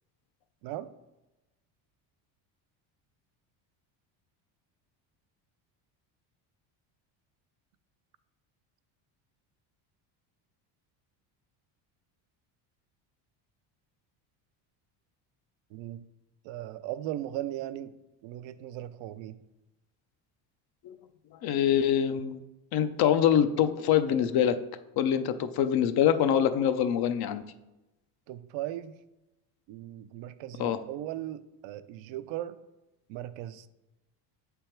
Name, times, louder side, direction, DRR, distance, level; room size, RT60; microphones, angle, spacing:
voice 1, 0.6-0.9 15.7-16.0 16.4-19.4 28.3-29.0 29.7-32.6 33.1-33.7, right 13 dB, 65° right, 14 dB, 0.6 m, -38 dB
voice 2, 21.4-22.4 22.7-24.6 25.0-27.4 30.6-30.8, left 9 dB, 50° left, 11 dB, 0.6 m, -24 dB
7.3 x 3.5 x 4.4 m, 0.97 s
cardioid pair, 110°, 50 cm